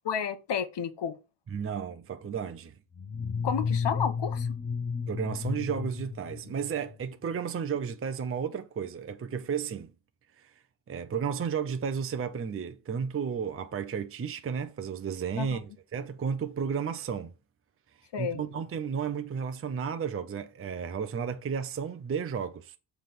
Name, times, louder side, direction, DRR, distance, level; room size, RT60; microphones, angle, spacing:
voice 1, 0.1-1.1 3.4-4.5 15.4-15.5 18.1-18.4, left 7 dB, 65° left, 0.9 m, -31 dB
voice 2, 1.5-2.7 5.1-9.9 10.4-10.5 10.9-17.3 18.2-22.8, right 7 dB, 30° right, 0.5 m, -33 dB
sound 1, 3.0-7.1, left 5 dB, 35° left, 0.9 m, -32 dB
7.4 x 3.4 x 5.9 m
wide cardioid pair, 155°, 47 cm